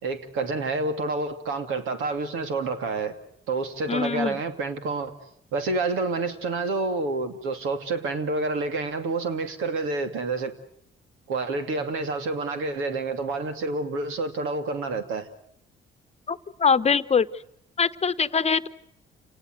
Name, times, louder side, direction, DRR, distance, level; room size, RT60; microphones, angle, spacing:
voice 1, 0.0-3.1 3.5-5.1 5.5-10.5 11.3-15.3, right 3 dB, 90° right, 2.8 m, -28 dB
voice 2, 3.9-4.4 16.3-17.3 17.8-18.7, left 6 dB, 30° left, 1.0 m, -23 dB
29.0 x 19.0 x 8.0 m
cardioid pair, 90°, 20 cm